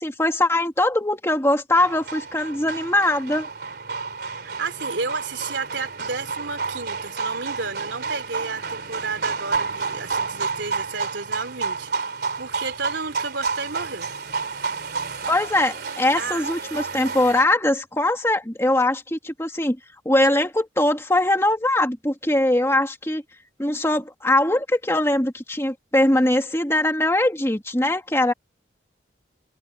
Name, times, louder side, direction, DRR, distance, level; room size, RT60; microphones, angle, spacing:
voice 1, 0.0-3.5 15.3-19.8 20.1-23.2 23.6-28.3, left 1 dB, 15° left, 1.9 m, -21 dB
sound 1, 1.8-17.4, right 4 dB, 60° right, 3.5 m, -30 dB
voice 2, 4.3-14.1 16.2-16.5, right 4 dB, 85° right, 3.1 m, -32 dB
head